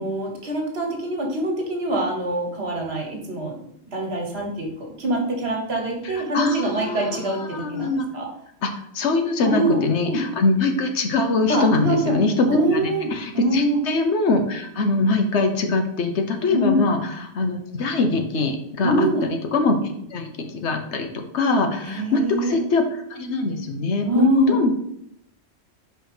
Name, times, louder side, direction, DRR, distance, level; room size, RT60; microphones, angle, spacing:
voice 1, 0.0-3.6 3.9-8.3 9.4-10.2 11.5-12.2 12.5-13.8 16.5-16.9 18.8-19.3 21.8-22.6 24.0-24.6, right 1 dB, 65° right, 1 dB, 1.6 m, -24 dB
voice 2, 6.0-8.1 8.6-22.8 23.1-24.7, left 3 dB, 80° left, 5 dB, 1.2 m, -23 dB
4.9 x 4.5 x 4.9 m, 0.72 s
omnidirectional pair, 1.1 m